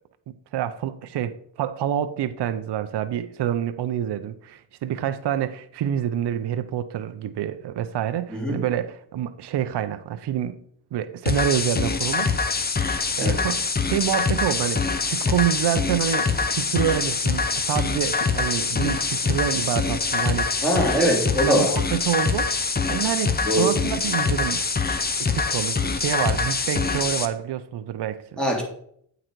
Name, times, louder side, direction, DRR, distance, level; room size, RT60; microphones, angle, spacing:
voice 1, 0.3-10.6 10.9-12.3 12.8-20.6 20.9-21.1 21.4-24.6 25.3-28.4, right 10 dB, 60° right, 10 dB, 0.6 m, -27 dB
voice 2, 8.3-8.6 13.2-13.4 20.6-21.7 23.4-23.7 28.4-28.6, equal, ahead, -2 dB, 2.9 m, -22 dB
sound 1, 11.3-27.3, left 4 dB, 20° left, 0.7 m, -24 dB
8.7 x 3.9 x 4.5 m, 0.65 s
cardioid pair, 70°, 45 cm